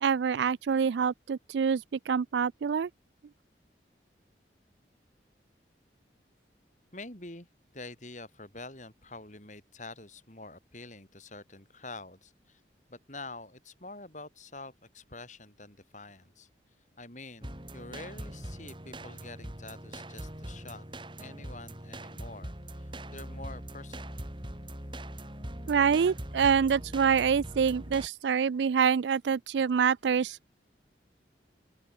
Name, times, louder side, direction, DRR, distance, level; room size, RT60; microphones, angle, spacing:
voice 1, 0.0-2.9 25.7-30.5, right 6 dB, 75° right, 0.4 m, -26 dB
voice 2, 6.9-7.5 7.7-12.6 12.9-16.5 17.0-20.8 21.2-24.2, left 2 dB, 40° left, 7.5 m, -46 dB
sound 1, 17.4-28.1, right 1 dB, 25° right, 4.1 m, -42 dB
open air
head